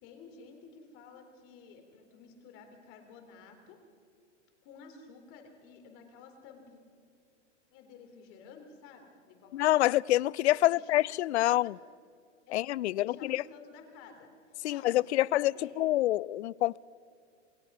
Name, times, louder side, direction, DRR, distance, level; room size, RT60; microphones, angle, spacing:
voice 1, 0.0-3.8 4.6-6.8 7.7-10.0 10.6-11.0 11.4-11.7 12.5-15.7, left 5 dB, 35° left, 4 dB, 3.8 m, -53 dB
voice 2, 9.5-11.7 12.5-13.4 14.6-16.8, left 15 dB, 65° left, 25 dB, 0.5 m, -27 dB
27.5 x 17.0 x 5.6 m, 2.3 s
hypercardioid pair, 140°, 37 cm